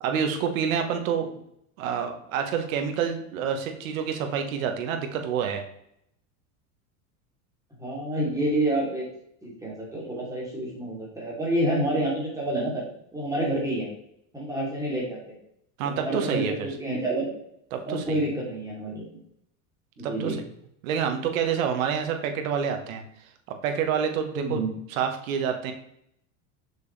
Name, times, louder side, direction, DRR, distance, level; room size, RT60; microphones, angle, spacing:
voice 1, 0.0-1.4 1.8-5.6 15.8-16.7 17.7-18.2 20.0-20.4 20.8-23.0 23.6-24.6 24.9-25.7, right 7 dB, 85° right, 5 dB, 1.4 m, -28 dB
voice 2, 7.8-9.1 9.4-12.8 13.1-13.9 14.3-15.2 15.8-17.3 17.8-19.0 20.0-20.4 24.3-24.7, right 1 dB, 10° right, -5 dB, 3.0 m, -28 dB
7.0 x 6.5 x 3.3 m, 0.74 s
supercardioid pair, 125°, 40 cm